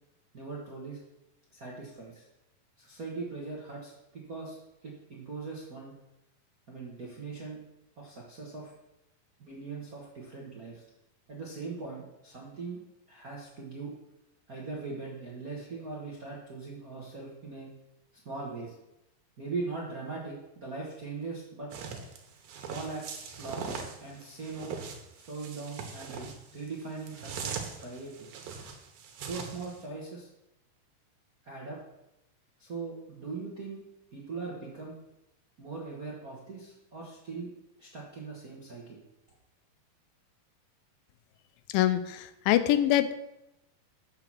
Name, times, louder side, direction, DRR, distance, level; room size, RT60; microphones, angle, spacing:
voice 1, 0.3-1.0 1.5-2.3 2.8-5.9 6.7-7.6 8.0-8.7 9.4-10.8 11.3-12.8 13.1-13.9 14.5-17.7 18.2-18.7 19.4-21.7 22.7-24.8 25.2-28.3 29.2-30.3 31.4-31.8 32.6-33.8 34.1-35.0 35.6-37.5 37.8-39.0, right 4 dB, 55° right, -5 dB, 0.9 m, -40 dB
sound 1, 21.7-29.8, right 6 dB, 80° right, 2.7 m, -41 dB
voice 2, 41.7-43.2, left 13 dB, 85° left, 11 dB, 2.3 m, -24 dB
7.7 x 5.9 x 6.1 m, 0.88 s
omnidirectional pair, 4.0 m